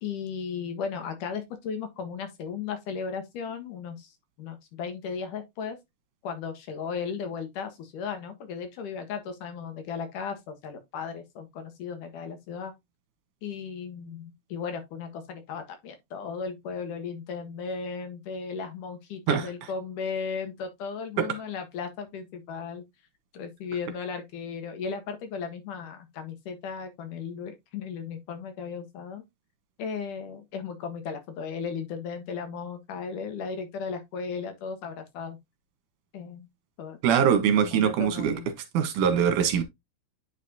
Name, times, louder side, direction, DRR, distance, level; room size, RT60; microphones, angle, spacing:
voice 1, 0.0-5.8 6.2-12.7 13.4-22.8 23.3-29.2 29.8-35.4 36.1-36.5 36.8-37.3 37.6-38.5, left 6 dB, 75° left, 2.9 m, -36 dB
voice 2, 37.0-38.4 38.7-39.6, right 8 dB, 75° right, 2.6 m, -23 dB
9.2 x 5.1 x 2.7 m
omnidirectional pair, 3.8 m